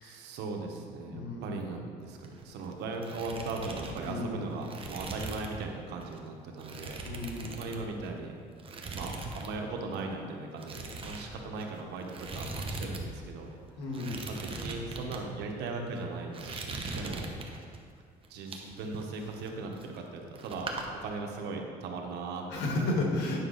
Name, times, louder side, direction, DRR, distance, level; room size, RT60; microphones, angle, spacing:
voice 1, 0.0-7.0 7.6-8.3 8.9-13.5 14.3-17.3 18.3-20.7 21.0-22.9, right 3 dB, 85° right, 2 dB, 1.1 m, -38 dB
voice 2, 1.1-1.6 4.0-4.5 7.0-7.6 13.8-14.2 16.9-17.0 22.5-23.4, left 2 dB, 80° left, 0 dB, 1.7 m, -33 dB
sound 1, 2.1-2.7 2.9-5.6 6.0-6.2 6.6-8.2 8.6-9.5 9.8-10.0 10.6-13.0 13.3-13.4 13.9-15.2 15.8-16.0 16.3-17.8 18.2-20.1 20.4-20.8, right 3 dB, 30° right, 1.0 m, -40 dB
9.6 x 6.0 x 4.0 m, 2.2 s
cardioid pair, 110°, 17 cm